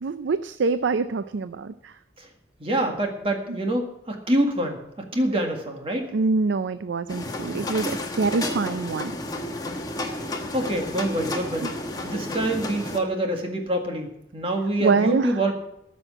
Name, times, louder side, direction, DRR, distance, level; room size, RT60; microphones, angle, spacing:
voice 1, 0.0-1.9 3.5-3.6 6.1-9.1 11.6-11.7 14.8-15.3, right 4 dB, 85° right, 12 dB, 0.5 m, -25 dB
voice 2, 2.6-4.8 5.1-6.1 10.1-10.2 10.5-11.8 12.0-15.5, right 1 dB, 30° right, 3 dB, 1.8 m, -26 dB
sound 1, 7.1-13.0, left 1 dB, 20° left, 1.2 m, -31 dB
13.5 x 6.3 x 8.8 m, 0.85 s
head